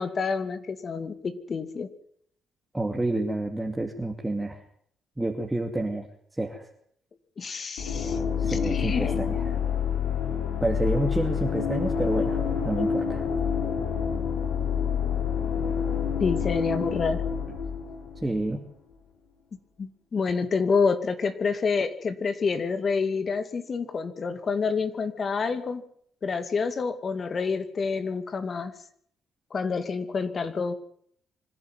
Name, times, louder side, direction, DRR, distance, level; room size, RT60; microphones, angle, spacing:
voice 1, 0.0-1.9 7.4-9.2 16.2-17.2 19.8-25.8 26.2-28.7 29.5-30.7, left 5 dB, 45° left, 10 dB, 2.4 m, -28 dB
voice 2, 2.7-4.6 5.2-6.1 6.4-6.7 8.4-9.4 10.6-13.2 18.2-18.6, right 2 dB, 10° right, 1 dB, 2.6 m, -29 dB
sound 1, 7.8-18.5, left 7 dB, 85° left, 5.2 m, -28 dB
25.5 x 11.0 x 9.3 m, 0.66 s
supercardioid pair, 70°, 0 cm